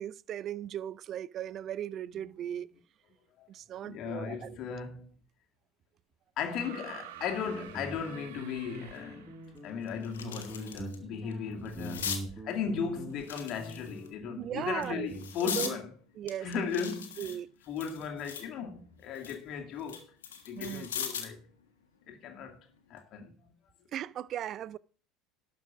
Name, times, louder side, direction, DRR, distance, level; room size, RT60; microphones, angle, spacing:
voice 1, 0.0-2.7 3.5-4.6 14.4-15.1 15.4-15.8 16.2-16.6 17.2-17.5 20.5-20.9 23.9-24.8, right 11 dB, 45° right, 0.5 m, -37 dB
voice 2, 3.8-5.1 6.4-12.2 12.4-15.9 16.4-17.4 17.7-20.1 20.5-21.4 22.1-22.6 22.9-23.3, left 6 dB, 50° left, 2.2 m, -36 dB
sound 1, 6.5-9.5 10.8-10.9, right 11 dB, 75° right, 1.2 m, -49 dB
Guitar, 7.1-15.6, right 1 dB, 10° right, 5.5 m, -44 dB
sound 2, 8.9-9.0 9.5-11.0 11.3-12.2 13.2-14.1 14.7-15.8 16.3-18.5 18.9-21.4 22.8-23.0, left 8 dB, 80° left, 1.5 m, -39 dB
12.0 x 6.1 x 6.0 m
hypercardioid pair, 75°, 0 cm